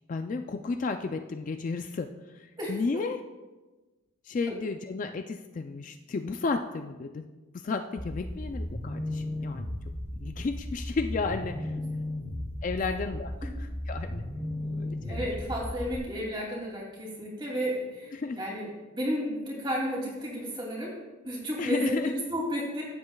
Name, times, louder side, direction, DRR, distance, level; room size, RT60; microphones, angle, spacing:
voice 1, 0.1-3.2 4.2-7.3 7.5-9.7 10.2-11.7 12.6-14.2 14.8-15.3 18.1-18.4 21.6-22.2, left 4 dB, 35° left, 7 dB, 0.3 m, -33 dB
voice 2, 2.6-3.0 4.5-4.6 13.4-13.5 14.6-14.7 15.0-18.7 18.9-20.9 21.2-22.8, equal, 20° right, -4 dB, 2.5 m, -33 dB
sound 1, 8.0-16.0, left 1 dB, 10° left, 1.1 m, -35 dB
15.0 x 7.7 x 2.3 m, 1.2 s
head